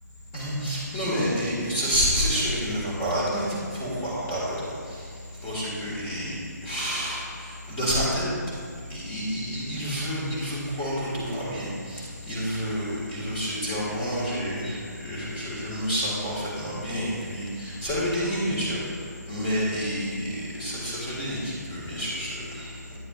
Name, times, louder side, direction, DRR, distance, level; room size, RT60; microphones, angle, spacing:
voice 1, 0.3-3.5 3.7-4.7 5.4-6.4 6.6-8.3 8.9-14.8 15.0-18.8 19.3-22.7, equal, 15° left, -7 dB, 1.9 m, -29 dB
11.5 x 9.4 x 2.5 m, 2.2 s
hypercardioid pair, 165°, 10 cm